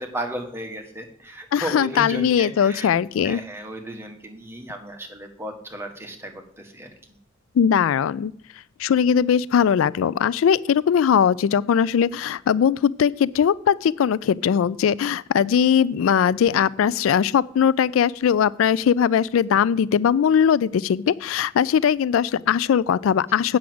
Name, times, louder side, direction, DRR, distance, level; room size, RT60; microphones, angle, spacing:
voice 1, 0.0-2.9 3.2-6.9, right 1 dB, 15° right, 3 dB, 1.6 m, -34 dB
voice 2, 1.5-3.4 7.6-8.3 8.8-23.6, left 8 dB, 85° left, 20 dB, 0.3 m, -20 dB
8.4 x 6.1 x 7.8 m, 0.62 s
head